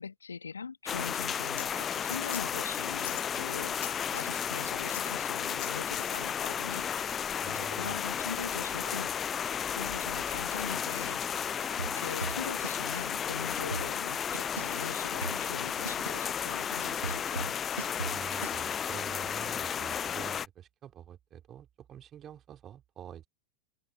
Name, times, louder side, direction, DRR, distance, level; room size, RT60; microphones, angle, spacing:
voice 1, 0.0-6.9 7.5-9.4 9.7-11.2 11.7-17.6, left 5 dB, 75° left, 1.5 m, -42 dB
sound 1, 0.9-20.5, left 8 dB, 25° left, 0.5 m, -33 dB
sound 2, 1.6-1.7 2.3-2.5 2.9-4.0 4.8-5.1 5.6-6.2, left 17 dB, 55° left, 1.1 m, -42 dB
voice 2, 7.4-8.0 18.1-23.3, right 10 dB, 25° right, 2.8 m, -47 dB
sound 3, 11.8-12.8 13.1-13.2 13.5-14.8 15.2-18.6, right 3 dB, 80° right, 0.6 m, -38 dB
open air
figure-of-eight pair, 90°, 0 cm